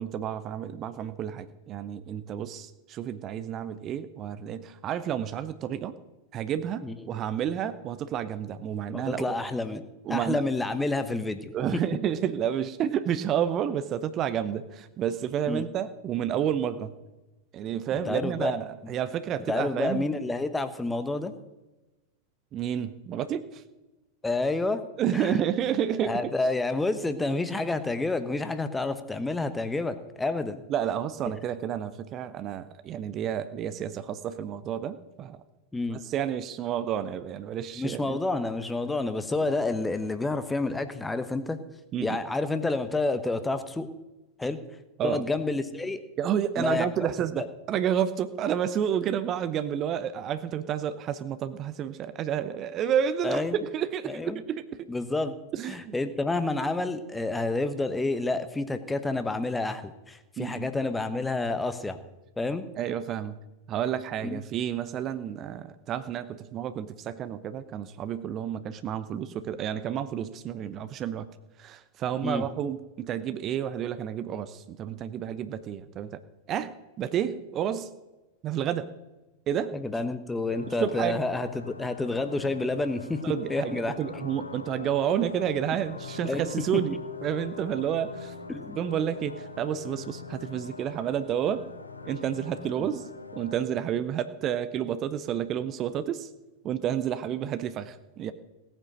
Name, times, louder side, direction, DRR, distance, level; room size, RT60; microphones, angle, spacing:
voice 1, 0.0-5.9 6.3-9.4 10.1-10.4 11.5-16.9 17.5-20.1 22.5-23.6 25.0-26.2 30.7-35.4 35.9-38.2 41.9-42.2 45.0-45.2 46.2-54.8 55.5-55.9 60.4-60.7 62.8-63.4 63.7-71.3 71.6-76.2 76.5-77.9 78.4-78.9 79.5-79.7 80.8-81.2 83.2-88.3 88.8-91.7 92.0-96.3 96.6-98.3, right 9 dB, 30° right, 12 dB, 0.8 m, -30 dB
voice 2, 8.9-9.8 10.1-11.8 15.5-15.6 18.0-18.5 18.8-18.9 19.5-21.3 24.2-24.8 25.1-25.4 26.0-30.6 35.7-36.0 37.8-41.6 42.0-43.9 44.4-44.6 45.0-46.0 46.6-46.9 47.4-47.5 53.2-53.6 54.1-54.4 54.9-55.3 55.7-62.0 62.4-62.6 64.2-64.4 72.2-72.5 79.7-83.2 83.5-83.9 86.2-86.4 88.5-88.8 92.8-92.9, left 2 dB, 10° left, 10 dB, 1.1 m, -29 dB
sound 1, 80.5-93.6, left 4 dB, 80° left, 1.0 m, -42 dB
17.5 x 9.0 x 6.3 m, 1.0 s
figure-of-eight pair, 90°, 0 cm